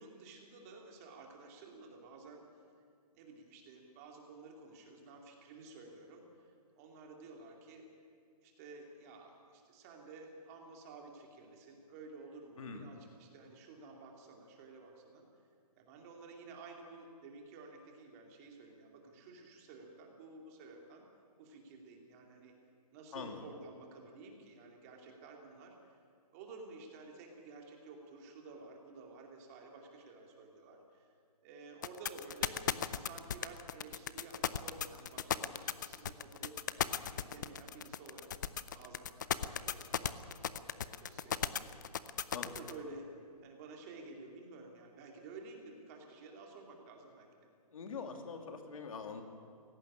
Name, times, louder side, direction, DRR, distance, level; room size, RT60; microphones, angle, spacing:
voice 1, 0.0-2.4 3.1-7.9 8.4-15.2 15.8-21.0 21.4-22.5 22.9-26.0 26.3-31.1 31.4-32.6 32.9-38.3 38.7-41.7 42.5-43.1 43.4-47.3, right 3 dB, 25° right, 1 dB, 2.6 m, -52 dB
voice 2, 23.1-23.4 42.3-42.6 47.7-49.2, left 5 dB, 55° left, 5 dB, 2.6 m, -43 dB
sound 1, 31.8-42.7, left 9 dB, 30° left, 0.5 m, -35 dB
17.5 x 15.5 x 9.7 m, 2.3 s
hypercardioid pair, 165°, 20 cm